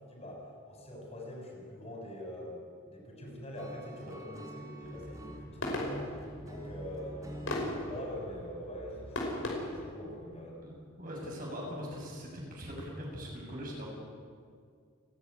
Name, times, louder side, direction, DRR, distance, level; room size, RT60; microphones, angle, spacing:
voice 1, 0.0-10.6, equal, 30° left, -1 dB, 6.4 m, -44 dB
Acoustic guitar / Strum, 3.6-7.7, right 1 dB, 15° right, 3.4 m, -47 dB
sound 1, 4.8-9.8, left 1 dB, 75° left, 5.6 m, -39 dB
voice 2, 10.6-13.9, equal, 40° right, -2 dB, 6.9 m, -41 dB
29.5 x 11.5 x 10.0 m, 2.1 s
head